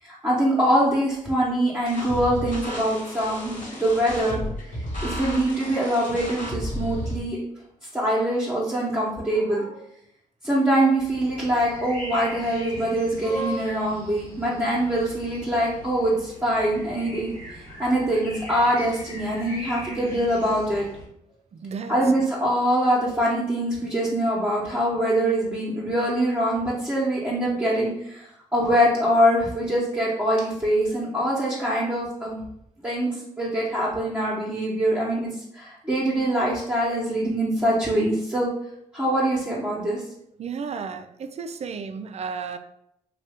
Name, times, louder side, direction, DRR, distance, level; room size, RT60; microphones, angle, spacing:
voice 1, 0.0-4.4 5.0-7.4 7.8-9.8 10.4-20.9 21.9-32.4 32.8-38.5 38.9-40.0, right 1 dB, 10° right, -8 dB, 0.9 m, -24 dB
sound 1, 1.9-7.2, equal, 55° left, 1.3 m, -33 dB
sound 2, 11.0-21.1, equal, 80° left, 0.9 m, -41 dB
voice 2, 21.5-22.0 40.4-42.6, right 5 dB, 45° right, 9 dB, 0.4 m, -33 dB
2.7 x 2.3 x 3.4 m, 0.77 s
supercardioid pair, 50°, 15 cm